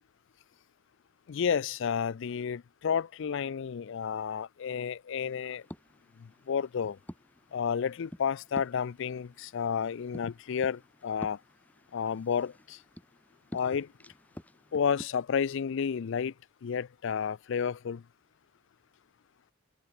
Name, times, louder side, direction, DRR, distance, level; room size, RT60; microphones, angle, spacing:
voice 1, 1.3-5.6 6.2-7.0 7.5-11.4 11.9-12.8 13.5-13.9 14.7-16.3 16.6-18.0, left 7 dB, 65° left, 0.4 m, -31 dB
sound 1, 5.1-15.0, equal, 10° left, 3.1 m, -50 dB
head